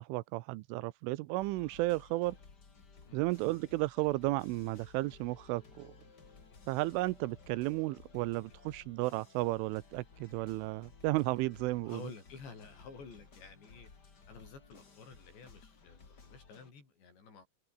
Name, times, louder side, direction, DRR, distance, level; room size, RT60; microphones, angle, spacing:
voice 1, 0.0-2.4 3.1-5.9 6.7-12.0, right 19 dB, 85° right, 3.2 m, -33 dB
sound 1, 1.4-16.7, left 4 dB, 30° left, 2.3 m, -58 dB
voice 2, 11.8-13.9 14.3-17.5, left 5 dB, 60° left, 9.0 m, -51 dB
omnidirectional pair, 5.7 m